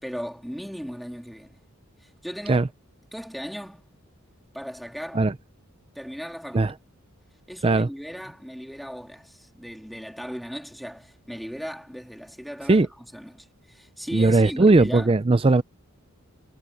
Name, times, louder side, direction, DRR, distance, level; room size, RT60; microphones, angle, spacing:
voice 1, 0.0-1.6 2.0-2.7 3.1-3.9 4.5-5.3 5.9-6.7 7.5-12.8 13.1-15.1, equal, ahead, 2.9 m, -37 dB
voice 2, 14.1-15.6, right 3 dB, 25° right, 0.5 m, -18 dB
head